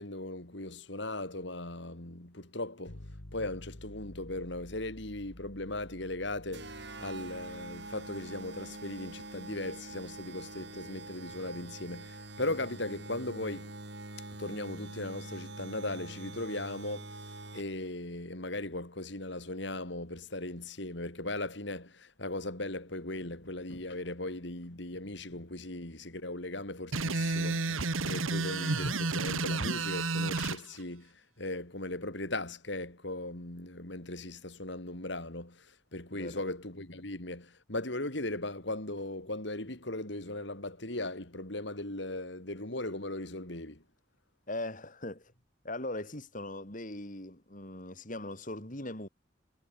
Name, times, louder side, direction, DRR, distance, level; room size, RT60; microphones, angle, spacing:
voice 1, 0.0-13.7 14.4-43.8, left 2 dB, 60° left, 3.4 m, -38 dB
sound 1, 2.9-12.7, left 1 dB, 80° left, 2.7 m, -53 dB
sound 2, 6.5-17.9, right 2 dB, 55° right, 7.9 m, -45 dB
sound 3, 26.9-30.6, right 3 dB, 90° right, 1.7 m, -31 dB
voice 2, 36.1-36.4 44.5-45.3 45.6-49.1, left 1 dB, 40° left, 3.9 m, -40 dB
head